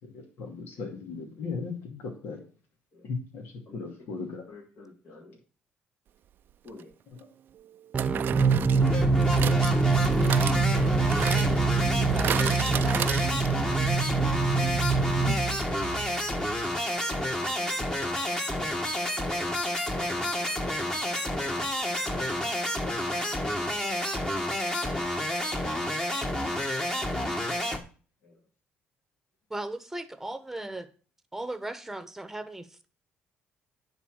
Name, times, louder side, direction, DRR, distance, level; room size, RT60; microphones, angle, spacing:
voice 1, 0.0-2.4 3.0-4.4 15.3-15.5, left 4 dB, 75° left, 2 dB, 2.3 m, -37 dB
voice 2, 4.1-5.4 6.6-6.9 8.0-9.4 11.0-14.2 15.0-15.6 17.1-17.8 28.2-28.4, left 2 dB, 55° left, -3 dB, 3.5 m, -48 dB
sound 1, 6.7-6.8 8.0-13.7 14.0-14.1 14.3-14.4, right 10 dB, 60° right, 0.4 m, -34 dB
sound 2, 7.9-16.6, right 4 dB, 35° right, 0.8 m, -25 dB
sound 3, 8.8-27.8, left 1 dB, 15° left, 1.7 m, -30 dB
voice 3, 29.5-30.9 31.3-32.9, right 1 dB, 10° right, 11 dB, 1.2 m, -37 dB
9.9 x 4.4 x 6.4 m, 0.38 s
cardioid pair, 90°, 4 cm